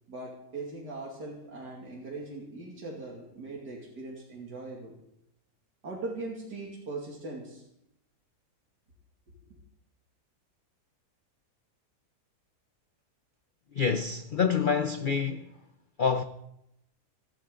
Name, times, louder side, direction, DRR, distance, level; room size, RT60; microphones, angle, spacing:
voice 1, 0.1-5.0 5.8-7.6 9.3-9.5, right 2 dB, 80° right, 3.2 m, -40 dB
voice 2, 13.7-15.5 16.0-16.2, left 6 dB, 50° left, 0.6 m, -27 dB
28.5 x 11.5 x 3.9 m
omnidirectional pair, 1.7 m